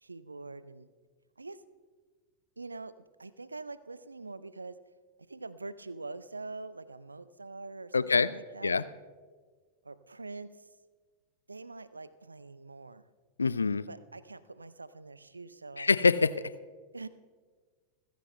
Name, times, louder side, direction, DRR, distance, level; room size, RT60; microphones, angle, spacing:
voice 1, 0.0-0.9 1.4-1.6 2.6-4.8 5.3-8.7 9.8-10.5 11.5-13.0 13.9-15.9 16.9-17.1, right 3 dB, 80° right, 16 dB, 0.5 m, -44 dB
voice 2, 7.9-8.3 8.6-8.9 13.4-13.8 15.8-16.5, left 4 dB, 75° left, 17 dB, 0.3 m, -25 dB
27.5 x 15.5 x 2.2 m, 1.5 s
figure-of-eight pair, 90°, 0 cm